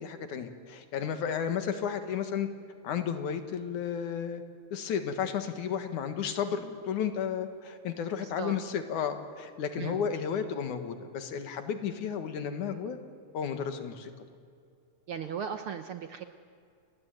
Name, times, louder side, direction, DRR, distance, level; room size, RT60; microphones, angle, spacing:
voice 1, 0.0-2.5 2.8-4.4 4.7-13.0 13.3-14.1, left 7 dB, 80° left, 7 dB, 3.1 m, -33 dB
voice 2, 8.2-8.6 9.8-10.0 15.1-16.2, right 7 dB, 65° right, 7 dB, 1.4 m, -37 dB
28.5 x 20.0 x 9.3 m, 2.3 s
omnidirectional pair, 3.4 m